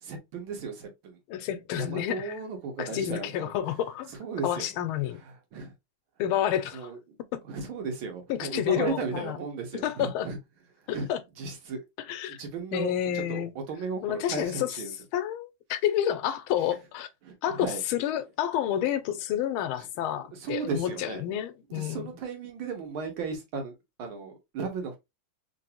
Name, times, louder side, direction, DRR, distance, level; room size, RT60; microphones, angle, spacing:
voice 1, 0.0-1.2 1.7-3.5 4.2-4.7 5.2-5.7 6.7-7.2 7.4-10.4 10.9-11.1 11.4-11.8 12.3-14.9 17.2-17.8 20.3-21.2 21.7-25.0, right 4 dB, 75° right, 1.8 m, -35 dB
voice 2, 1.3-2.3 2.8-4.2 4.4-5.2 6.2-6.9 7.3-7.4 8.3-9.4 9.8-10.3 10.9-11.2 12.1-12.4 12.7-13.5 14.0-14.8 15.1-17.1 17.4-22.1, left 11 dB, 85° left, 1.4 m, -29 dB
3.8 x 2.6 x 2.7 m
omnidirectional pair, 2.3 m